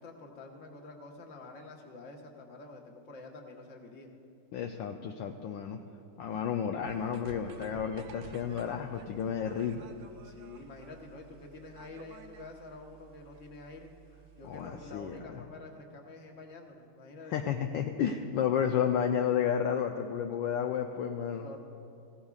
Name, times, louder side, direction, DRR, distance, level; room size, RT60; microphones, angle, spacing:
voice 1, 0.0-4.1 10.2-13.9 14.4-17.5 21.4-21.6, left 2 dB, 40° left, 1 dB, 1.4 m, -48 dB
voice 2, 4.5-5.8 6.2-9.9 14.4-15.4 17.3-21.5, left 8 dB, 75° left, 4 dB, 1.2 m, -32 dB
sound 1, 6.8-15.2, right 6 dB, 80° right, 0.7 m, -52 dB
18.5 x 15.5 x 2.4 m, 2.5 s
omnidirectional pair, 2.3 m